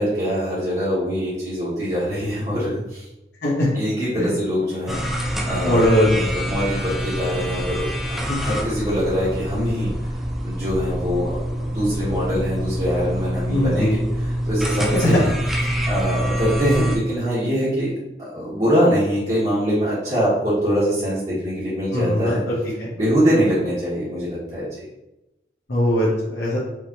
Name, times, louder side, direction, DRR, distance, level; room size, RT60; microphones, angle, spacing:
voice 1, 0.0-3.1 3.7-9.9 10.4-15.3 15.6-17.9 18.2-22.4 22.9-24.8, equal, 35° right, -11 dB, 1.4 m, -23 dB
sound 1, 4.9-17.0, equal, ahead, 0.5 m, -26 dB
voice 2, 5.6-6.2 13.5-13.9 15.0-15.2 21.9-22.3 22.8-22.9 25.7-26.6, left 1 dB, 80° left, -7 dB, 1.1 m, -19 dB
4.8 x 3.3 x 2.9 m, 0.96 s
head